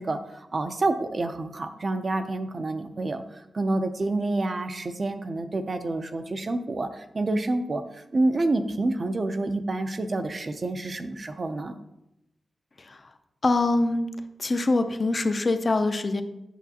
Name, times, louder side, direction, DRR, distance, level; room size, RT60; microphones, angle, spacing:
voice 1, 0.0-11.7, right 2 dB, 40° right, 8 dB, 0.5 m, -28 dB
voice 2, 12.8-13.1 13.4-14.1 14.4-16.2, left 2 dB, 35° left, 8 dB, 0.5 m, -24 dB
8.3 x 6.0 x 2.8 m, 0.86 s
wide cardioid pair, 150°, 0 cm